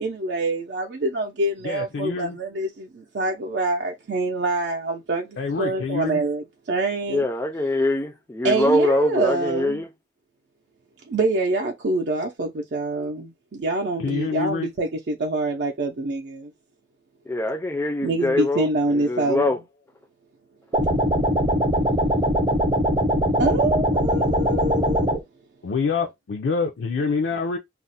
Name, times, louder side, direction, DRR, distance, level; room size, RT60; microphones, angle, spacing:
voice 1, 0.0-7.2 8.4-9.8 11.1-16.5 18.0-19.4 23.4-25.1, right 2 dB, 65° right, 0.5 m, -25 dB
voice 2, 1.6-2.4 5.4-6.2 14.0-14.7 25.6-27.6, left 5 dB, 85° left, 0.4 m, -26 dB
voice 3, 7.1-9.9 17.3-19.6, left 1 dB, 15° left, 0.3 m, -23 dB
sound 1, 20.7-25.2, equal, 30° right, 0.7 m, -21 dB
2.4 x 2.1 x 3.9 m
head